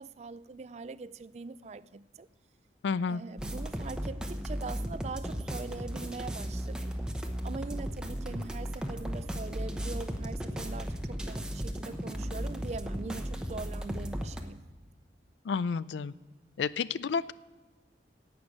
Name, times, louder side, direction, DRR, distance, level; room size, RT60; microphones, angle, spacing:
voice 1, 0.0-2.3 3.1-6.9 7.4-14.6, right 4 dB, 40° right, 0.3 m, -42 dB
voice 2, 2.8-3.2 15.4-16.1 16.6-17.3, left 5 dB, 85° left, 0.4 m, -30 dB
sound 1, 3.4-14.4, equal, 5° right, 0.8 m, -35 dB
11.5 x 8.1 x 8.4 m
head